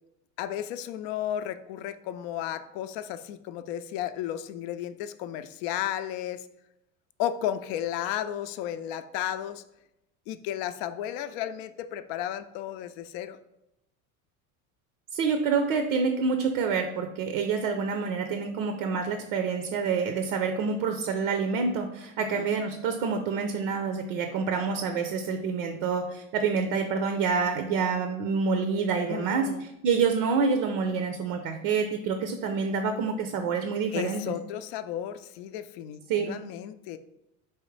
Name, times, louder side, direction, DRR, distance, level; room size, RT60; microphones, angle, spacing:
voice 1, 0.4-6.5 7.2-9.6 10.3-13.4 22.2-22.5 29.1-29.6 33.9-37.0, left 11 dB, 60° left, 12 dB, 0.5 m, -33 dB
voice 2, 15.1-34.2 36.1-36.3, right 5 dB, 65° right, 6 dB, 0.6 m, -27 dB
4.8 x 3.1 x 3.2 m, 0.86 s
hypercardioid pair, 85°, 44 cm